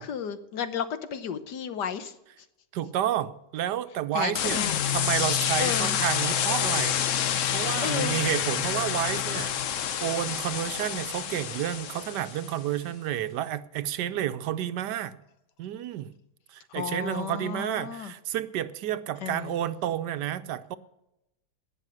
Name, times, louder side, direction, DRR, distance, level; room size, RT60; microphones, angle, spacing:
voice 1, 0.0-2.5 4.1-4.8 5.6-6.0 7.8-8.2 16.7-18.1 19.2-19.5, left 7 dB, 85° left, 1.6 m, -33 dB
voice 2, 2.7-4.6 4.9-15.2 15.6-16.1 16.5-20.8, right 11 dB, 85° right, 1.4 m, -30 dB
sound 1, 4.4-12.6, left 9 dB, 60° left, 1.0 m, -28 dB
18.0 x 6.4 x 7.9 m
omnidirectional pair, 1.8 m